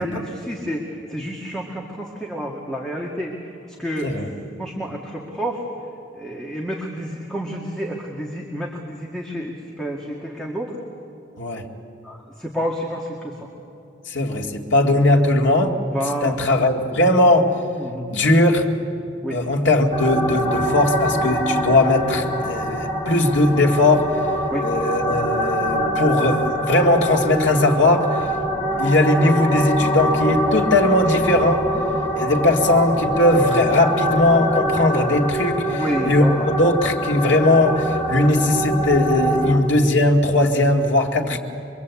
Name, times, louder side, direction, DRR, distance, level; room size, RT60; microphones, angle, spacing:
voice 1, 0.0-3.3 3.7-4.2 4.6-5.6 6.1-10.7 12.0-13.5 15.9-16.4 17.8-18.1 19.2-19.4 24.5-24.7 28.5-28.8 35.7-36.5 39.5-39.6 41.2-41.4, equal, 5° left, -2 dB, 2.1 m, -29 dB
voice 2, 14.1-15.7 16.2-17.5 18.1-18.7 19.3-24.1 24.6-28.3 28.8-31.6 32.2-41.4, left 1 dB, 75° left, 2 dB, 2.2 m, -19 dB
sound 1, 19.9-39.5, equal, 35° left, 4.2 m, -24 dB
24.5 x 23.5 x 8.4 m, 2.8 s
head